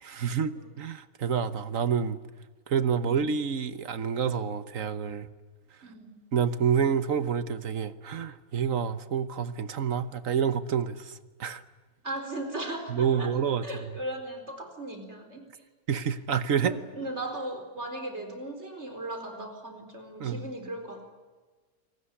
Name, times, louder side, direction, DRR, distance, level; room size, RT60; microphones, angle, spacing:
voice 1, 0.0-2.2 2.7-5.3 6.3-11.6 12.9-13.6 15.9-16.7 20.2-20.4, right 7 dB, 65° right, 13 dB, 1.4 m, -28 dB
voice 2, 5.8-6.2 12.0-13.4 13.6-15.6 16.6-21.0, right 1 dB, 45° right, 6 dB, 4.6 m, -37 dB
29.0 x 19.5 x 10.0 m, 1.4 s
omnidirectional pair, 1.6 m